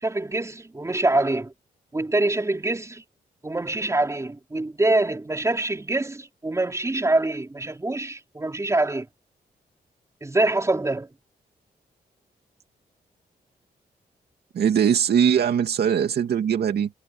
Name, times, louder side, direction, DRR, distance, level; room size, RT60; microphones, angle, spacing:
voice 1, 0.0-1.5 1.9-3.0 3.4-9.1 10.2-11.1, right 2 dB, 20° right, 4.4 m, -25 dB
voice 2, 14.5-16.9, right 8 dB, 85° right, 2.5 m, -21 dB
wide cardioid pair, 125°, 16 cm